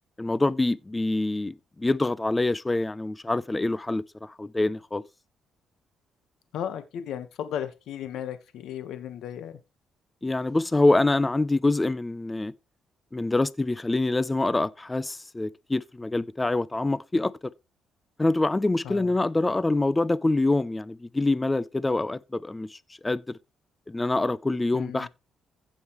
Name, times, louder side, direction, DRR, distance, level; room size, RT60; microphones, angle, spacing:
voice 1, 0.2-5.0 10.2-12.5 13.1-17.3 18.2-22.8 23.0-23.2 23.9-25.1, left 2 dB, 15° left, 0.6 m, -25 dB
voice 2, 6.5-9.6 18.8-19.1 24.7-25.1, left 9 dB, 80° left, 1.3 m, -35 dB
15.5 x 5.4 x 3.1 m
cardioid pair, 90°, 0 cm